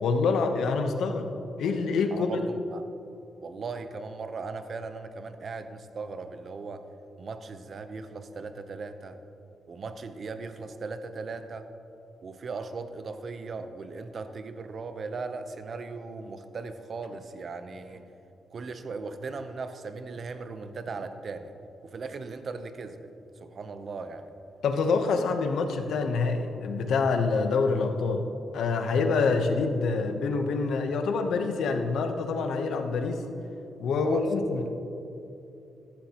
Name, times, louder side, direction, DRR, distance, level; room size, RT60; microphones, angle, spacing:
voice 1, 0.0-1.3 1.6-2.3 24.6-28.3 28.5-33.2 33.8-34.7, left 4 dB, 80° left, 5 dB, 0.8 m, -26 dB
voice 2, 2.1-2.8 3.4-6.8 7.2-9.2 9.7-11.7 12.2-18.0 18.5-21.5 21.8-23.1 23.4-24.3 34.0-34.3, right 4 dB, 45° right, 9 dB, 0.7 m, -38 dB
14.0 x 11.5 x 2.9 m, 2.8 s
cardioid pair, 125°, 0 cm